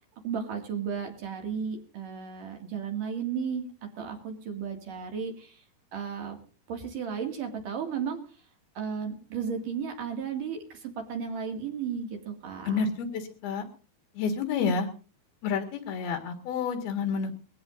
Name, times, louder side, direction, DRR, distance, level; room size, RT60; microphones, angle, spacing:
voice 1, 0.2-5.6 5.9-6.4 6.7-8.2 8.8-12.9, right 6 dB, 60° right, 3 dB, 3.6 m, -34 dB
voice 2, 12.7-13.7 14.1-14.9 15.4-17.3, left 5 dB, 75° left, 4 dB, 3.6 m, -29 dB
22.0 x 16.5 x 2.6 m, 0.36 s
omnidirectional pair, 4.5 m